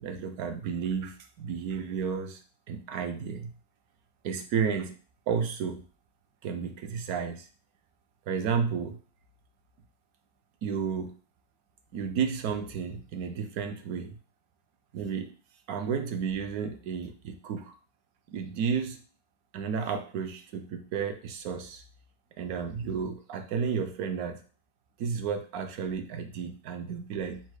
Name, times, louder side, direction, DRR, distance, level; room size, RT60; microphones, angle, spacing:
voice 1, 0.0-2.4 2.7-3.5 4.2-4.9 5.3-5.8 6.4-7.5 8.3-9.0 10.6-11.1 11.9-14.2 14.9-15.3 15.7-17.7 18.3-19.0 19.5-21.8 22.4-24.4 25.0-27.4, right 6 dB, 70° right, 6 dB, 0.9 m, -32 dB
4.3 x 2.2 x 4.6 m, 0.38 s
omnidirectional pair, 1.9 m